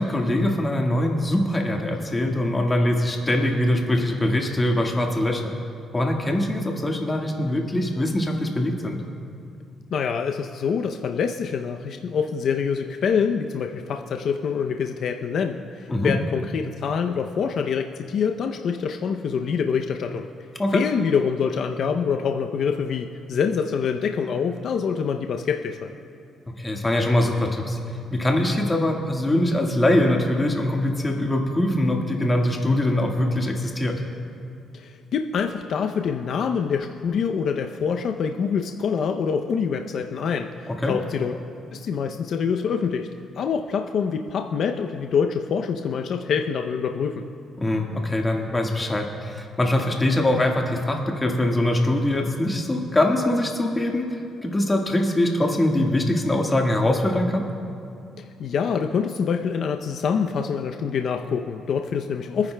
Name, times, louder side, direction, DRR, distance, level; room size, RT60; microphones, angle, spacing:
voice 1, 0.0-5.4 5.9-9.0 15.9-16.1 20.6-20.8 26.6-27.8 28.1-34.0 40.7-40.9 47.6-57.5, left 1 dB, 20° left, 1 dB, 1.6 m, -23 dB
voice 2, 9.9-20.3 20.7-25.9 34.7-41.4 41.7-43.1 43.4-47.2 58.2-62.5, left 6 dB, 65° left, 4 dB, 0.6 m, -25 dB
25.5 x 9.7 x 2.2 m, 2.5 s
cardioid pair, 90°, 0 cm